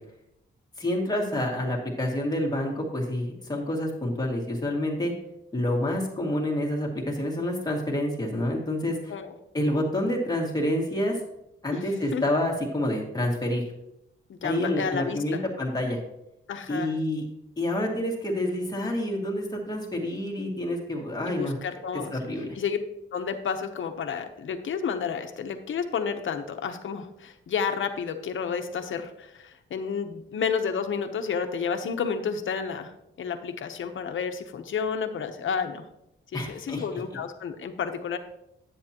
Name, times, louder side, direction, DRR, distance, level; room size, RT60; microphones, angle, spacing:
voice 1, 0.8-5.1 5.5-9.1 9.5-11.2 11.6-13.6 14.4-16.0 16.7-17.2 17.6-21.6 21.9-22.6 36.3-36.8, left 1 dB, 20° left, -1 dB, 2.0 m, -28 dB
voice 2, 14.3-15.4 16.5-16.9 21.3-22.1 22.5-22.8 23.1-35.8 36.3-38.2, left 6 dB, 70° left, 7 dB, 0.9 m, -31 dB
10.0 x 8.6 x 3.0 m, 0.84 s
wide cardioid pair, 130°, 21 cm